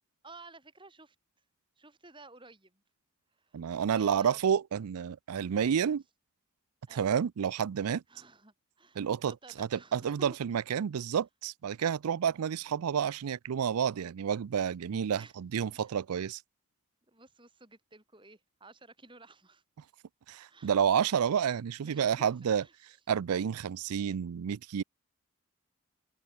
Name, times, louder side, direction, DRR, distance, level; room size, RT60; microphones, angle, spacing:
voice 1, 0.2-1.2 1.8-2.8 3.4-3.6 3.9-4.5 6.9-7.2 8.1-10.4 11.0-11.2 15.2-15.3 15.7-15.9 17.1-19.6 20.5-21.0 21.8-22.7, right 3 dB, 20° right, 6.1 m, -54 dB
voice 2, 3.5-6.0 6.9-8.0 9.0-16.4 20.3-22.6 23.1-24.8, right 8 dB, 85° right, 0.4 m, -30 dB
open air
head